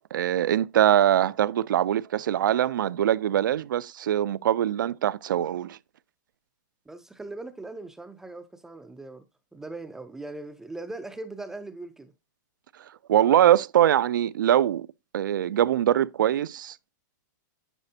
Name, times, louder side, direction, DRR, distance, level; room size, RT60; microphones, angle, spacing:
voice 1, 0.1-5.8 13.1-14.9 15.1-16.8, right 11 dB, 85° right, 0.4 m, -22 dB
voice 2, 6.9-9.2 9.5-12.1, right 2 dB, 5° right, 0.3 m, -40 dB
9.9 x 4.1 x 2.7 m
hypercardioid pair, 160°, 10 cm